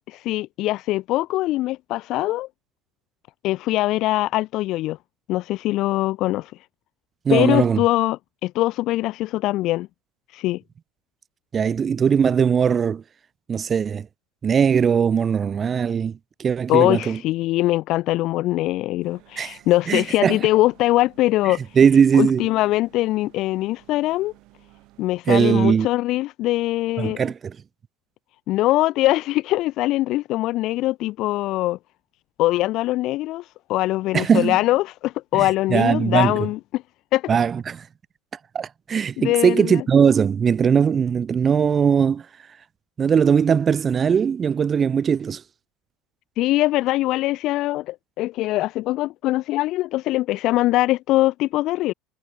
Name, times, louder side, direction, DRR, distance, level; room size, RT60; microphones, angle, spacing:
voice 1, 0.1-2.5 3.4-5.0 5.3-6.5 7.3-9.9 10.3-10.6 16.7-21.8 22.1-24.3 25.0-27.2 28.5-31.8 32.4-36.8 37.1-37.3 39.2-39.8 46.4-51.9, left 17 dB, 55° left, 0.6 m, -22 dB
voice 2, 7.3-7.8 11.5-13.0 13.5-14.1 14.4-17.2 19.4-19.6 19.9-20.4 21.8-22.5 25.3-25.9 27.0-27.6 34.1-34.6 35.3-36.4 37.3-37.9 38.5-42.3 43.0-45.4, right 7 dB, 30° right, 0.4 m, -19 dB
sound 1, 19.0-25.2, right 21 dB, 60° right, 7.9 m, -54 dB
supercardioid pair, 120°, 0 cm